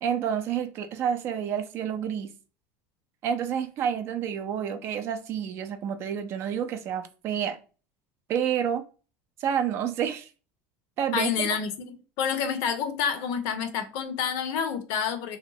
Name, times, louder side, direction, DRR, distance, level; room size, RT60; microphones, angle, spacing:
voice 1, 0.0-2.3 3.2-7.6 8.3-8.8 9.4-10.3 11.0-11.3, right 8 dB, 50° right, 0.4 m, -29 dB
voice 2, 11.1-15.4, left 7 dB, 70° left, 0.5 m, -28 dB
2.7 x 2.1 x 2.7 m
supercardioid pair, 110°, 6 cm